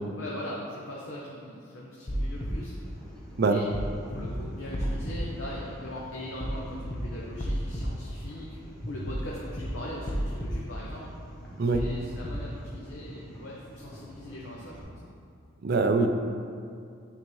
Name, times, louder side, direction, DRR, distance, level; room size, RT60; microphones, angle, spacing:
voice 1, 0.2-2.7 3.3-3.7 4.1-8.6 8.9-11.1 11.6-15.1, left 1 dB, 80° left, -5 dB, 0.7 m, -40 dB
sound 1, 2.1-2.5 3.7-3.9 4.2-4.3 4.7-5.2 6.4-6.6 6.9-7.0 7.4-7.8 9.1-9.3 9.6-9.7 10.1-10.5 11.7-11.9 12.2-12.3, equal, 30° left, 0.6 m, -31 dB
sound 2, 2.1-14.8, equal, 5° left, 0.9 m, -46 dB
voice 2, 15.6-16.1, right 3 dB, 50° right, 6 dB, 0.4 m, -23 dB
8.7 x 3.5 x 3.1 m, 2.4 s
head